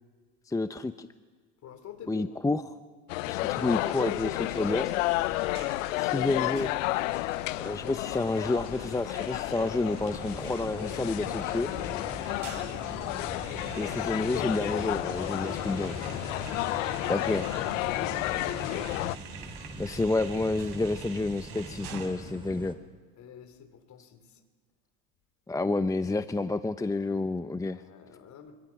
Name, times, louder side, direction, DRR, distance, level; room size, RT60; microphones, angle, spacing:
voice 1, 0.5-1.1 2.1-2.6 3.3-4.9 6.0-6.7 7.6-11.7 13.8-16.0 17.1-17.5 19.8-22.8 25.5-27.8, left 2 dB, 10° left, 11 dB, 0.8 m, -29 dB
voice 2, 1.6-2.4 12.2-12.7 17.8-18.9 23.2-24.2 27.7-28.6, left 7 dB, 45° left, 8 dB, 4.1 m, -45 dB
sound 1, 3.1-19.2, left 19 dB, 75° left, 0.7 m, -32 dB
sound 2, 3.4-22.1, right 6 dB, 60° right, 7.7 m, -47 dB
sound 3, 9.9-22.7, right 1 dB, 15° right, 3.6 m, -43 dB
25.5 x 25.0 x 6.2 m, 1.5 s
hypercardioid pair, 85°, 39 cm